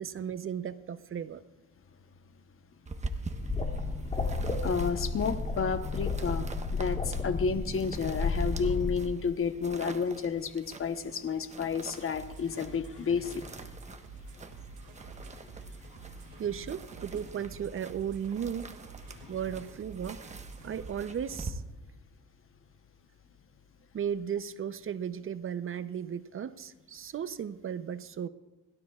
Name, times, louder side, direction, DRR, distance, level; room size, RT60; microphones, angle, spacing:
voice 1, 0.0-1.4 16.4-18.7 19.3-20.2 20.6-21.6 23.9-28.3, right 8 dB, 45° right, 13 dB, 0.6 m, -35 dB
sound 1, 2.9-21.5, right 2 dB, 25° right, 1.1 m, -45 dB
sound 2, 3.4-9.0, left 3 dB, 25° left, 2.6 m, -32 dB
voice 2, 4.6-13.4 19.2-19.3, left 5 dB, 45° left, 9 dB, 1.0 m, -31 dB
sound 3, 12.1-20.9, right 5 dB, 75° right, 2.4 m, -48 dB
30.0 x 12.5 x 2.4 m, 1.0 s
cardioid pair, 90°, 30 cm